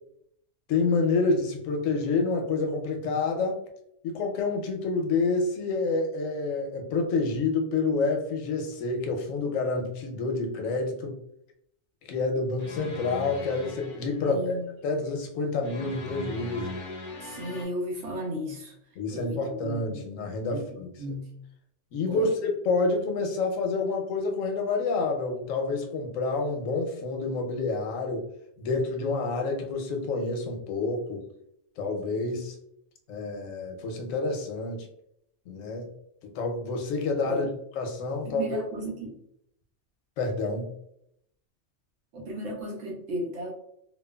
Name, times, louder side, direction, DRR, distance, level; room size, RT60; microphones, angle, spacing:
voice 1, 0.7-3.6 4.0-11.2 12.0-14.6 14.8-16.7 19.0-21.2 21.9-28.2 28.6-31.2 31.8-32.5 33.1-34.9 35.5-35.9 36.2-37.5 37.8-38.6 40.2-40.7, left 3 dB, 90° left, 3 dB, 1.0 m, -28 dB
sound 1, 12.6-14.3 15.6-17.7, left 2 dB, 55° left, 0.6 m, -40 dB
voice 2, 14.2-14.7 17.2-18.7 19.1-20.0 20.5-21.3 22.1-22.3 37.2-37.5 38.2-39.1 42.1-43.5, right 1 dB, 80° right, 0 dB, 1.1 m, -35 dB
3.0 x 2.2 x 2.2 m, 0.73 s
omnidirectional pair, 1.3 m